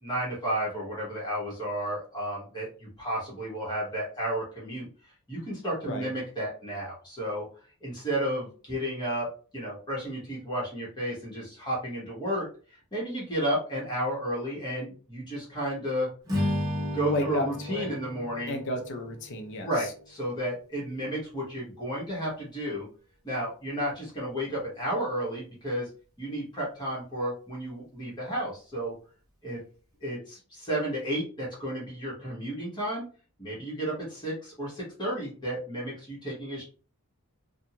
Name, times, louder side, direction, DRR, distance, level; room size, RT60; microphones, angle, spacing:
voice 1, 0.0-4.9 5.3-7.5 7.8-9.3 9.5-16.1 16.9-18.6 19.6-22.9 23.2-25.9 26.2-28.9 29.4-29.6 30.0-33.0 33.4-36.6, right 1 dB, 20° left, -6 dB, 1.2 m, -32 dB
Strum, 16.2-20.7, left 1 dB, 15° right, 1.0 m, -34 dB
voice 2, 17.0-17.9 18.5-19.9, left 1 dB, 55° left, 5 dB, 0.6 m, -32 dB
2.6 x 2.3 x 2.8 m, 0.39 s
head